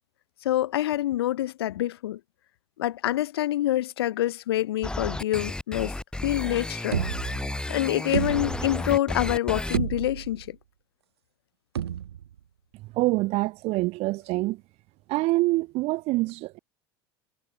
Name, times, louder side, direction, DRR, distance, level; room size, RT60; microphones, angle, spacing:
voice 1, 0.4-2.2 2.8-5.9 6.2-7.0 7.7-10.6, left 13 dB, 70° left, 4.7 m, -26 dB
sound 1, 4.8-9.8, left 2 dB, 5° left, 1.3 m, -32 dB
sound 2, 6.9-7.7 8.1-8.9 9.3-9.4 9.7-10.5 11.7-12.4, right 10 dB, 75° right, 0.8 m, -31 dB
voice 2, 12.7-14.6 15.1-16.6, right 20 dB, 50° right, 1.3 m, -26 dB
figure-of-eight pair, 75°, 13 cm